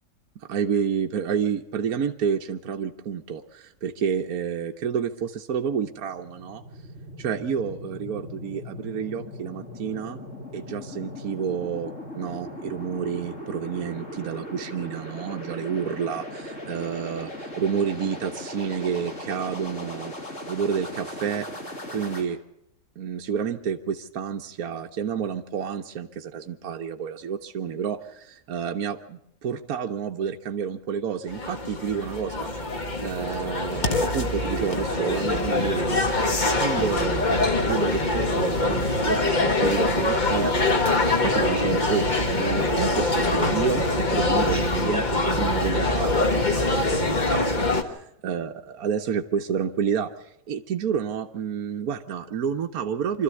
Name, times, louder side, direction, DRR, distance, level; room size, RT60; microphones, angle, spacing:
voice 1, 0.4-6.6 7.2-10.2 10.5-20.1 20.4-21.4 21.9-22.4 23.0-32.5 33.0-40.7 41.2-53.2, right 7 dB, 60° right, 3 dB, 1.4 m, -30 dB
sound 1, 5.7-22.2, left 1 dB, 45° left, 3.7 m, -38 dB
sound 2, 31.3-47.8, left 2 dB, 30° left, 1.5 m, -24 dB
25.0 x 13.5 x 8.3 m, 0.76 s
omnidirectional pair, 1.8 m